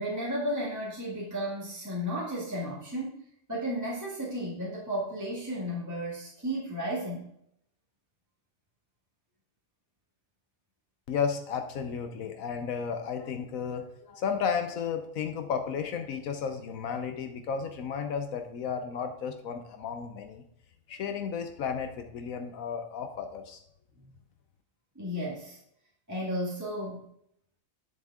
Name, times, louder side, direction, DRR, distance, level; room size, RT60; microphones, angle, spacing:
voice 1, 0.0-7.3 25.0-25.6 26.1-27.0, equal, 15° right, -6 dB, 1.9 m, -33 dB
voice 2, 11.1-20.4 20.9-23.6, left 6 dB, 80° left, 6 dB, 1.2 m, -33 dB
10.0 x 7.2 x 3.6 m, 0.73 s
omnidirectional pair, 1.4 m